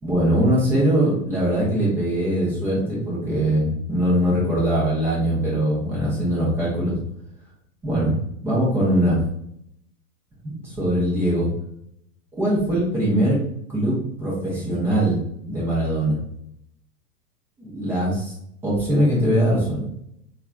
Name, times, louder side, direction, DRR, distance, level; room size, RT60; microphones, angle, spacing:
voice 1, 0.0-6.9 7.8-8.2 8.4-9.2 10.4-11.5 12.4-13.4 13.7-16.2 17.6-18.3 18.6-19.9, right 1 dB, 5° right, -7 dB, 0.3 m, -21 dB
3.1 x 2.2 x 2.3 m, 0.74 s
hypercardioid pair, 120°, 46 cm